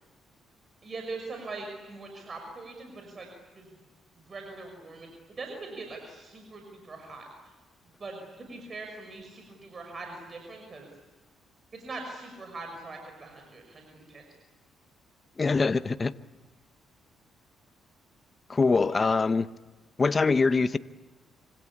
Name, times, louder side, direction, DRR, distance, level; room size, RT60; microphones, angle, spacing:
voice 1, 0.8-3.3 3.5-3.8 4.2-7.5 8.0-10.9 11.7-14.2 18.9-19.1, right 3 dB, 35° right, 5.9 m, -42 dB
voice 2, 15.4-16.1 18.5-19.5 20.0-20.8, left 4 dB, 30° left, 0.8 m, -23 dB
26.0 x 25.5 x 8.6 m
cardioid pair, 90°, 0 cm